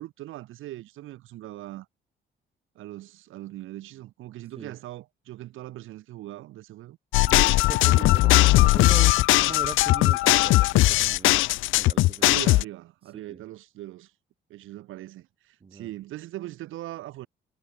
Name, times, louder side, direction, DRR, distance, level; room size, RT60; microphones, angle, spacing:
voice 1, 0.0-1.9 2.8-7.0 7.8-8.2 12.2-14.1 14.5-17.3, right 15 dB, 90° right, 4.3 m, -40 dB
sound 1, 7.1-12.6, left 18 dB, 85° left, 0.5 m, -19 dB
voice 2, 7.2-11.4 11.7-12.4 13.1-13.4 15.6-15.9, right 5 dB, 30° right, 1.2 m, -40 dB
cardioid pair, 90°, 20 cm